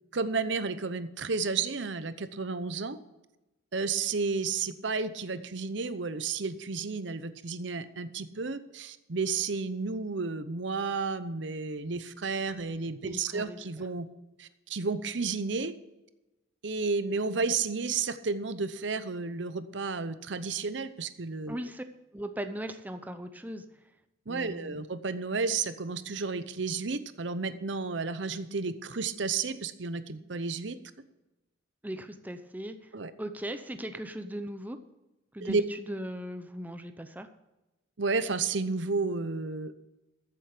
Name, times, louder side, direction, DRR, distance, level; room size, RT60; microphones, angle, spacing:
voice 1, 0.1-3.0 3.7-14.1 14.4-15.7 16.6-21.7 24.3-30.8 32.9-33.1 35.4-35.6 38.0-39.8, right 4 dB, 65° right, 12 dB, 0.8 m, -32 dB
voice 2, 13.0-13.6 21.5-21.8 22.1-23.6 24.3-24.8 31.8-32.8 33.2-34.8 35.3-37.3, right 1 dB, 10° right, 8 dB, 0.7 m, -38 dB
14.0 x 7.8 x 5.0 m, 1.0 s
head